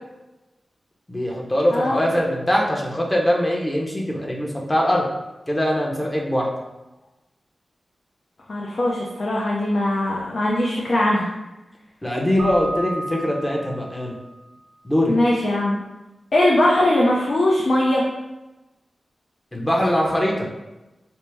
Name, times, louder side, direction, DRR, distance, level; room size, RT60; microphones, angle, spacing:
voice 1, 1.1-5.0 5.5-6.5 12.0-14.2 14.8-15.1 19.5-20.5, equal, 20° left, -2 dB, 0.7 m, -22 dB
voice 2, 1.7-2.0 8.5-11.3 15.1-15.8 16.3-18.0, left 1 dB, 60° left, -4 dB, 0.5 m, -20 dB
Keyboard (musical), 12.4-14.2, right 1 dB, 65° right, 0.4 m, -31 dB
4.4 x 2.0 x 3.4 m, 1.0 s
wide cardioid pair, 80°, 0 cm